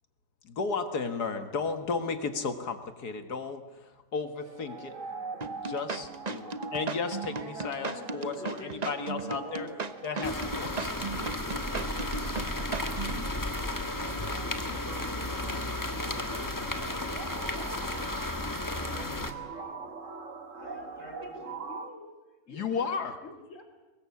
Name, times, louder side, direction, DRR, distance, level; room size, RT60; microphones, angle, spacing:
voice 1, 0.4-4.9 5.6-9.7 10.0-10.9 22.5-23.2, left 5 dB, 65° left, 8 dB, 2.1 m, -34 dB
sound 1, 4.4-21.9, right 4 dB, 50° right, 1.8 m, -44 dB
sound 2, 5.4-13.2, right 4 dB, 30° right, 0.8 m, -36 dB
voice 2, 7.4-12.9 13.5-17.0 17.4-18.3 18.7-20.2 20.5-21.5, right 1 dB, 65° right, 2 dB, 6.6 m, -48 dB
sound 3, 10.2-19.3, left 1 dB, 10° left, 1.4 m, -33 dB
voice 3, 20.6-23.6, left 2 dB, 45° left, 4 dB, 4.2 m, -49 dB
23.5 x 20.5 x 8.4 m, 1.1 s
omnidirectional pair, 1.8 m